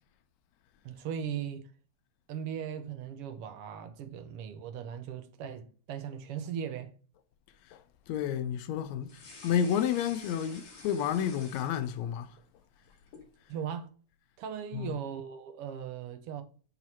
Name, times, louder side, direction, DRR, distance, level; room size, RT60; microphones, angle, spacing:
voice 1, 0.8-1.7 2.3-6.9 13.5-13.9 14.4-16.4, right 8 dB, 80° right, 1.3 m, -38 dB
voice 2, 7.7-12.4 14.7-15.0, left 9 dB, 75° left, 1.8 m, -31 dB
sound 1, 9.0-12.3 12.6-13.3, left 3 dB, 55° left, 3.7 m, -50 dB
7.5 x 4.0 x 4.3 m
omnidirectional pair, 3.5 m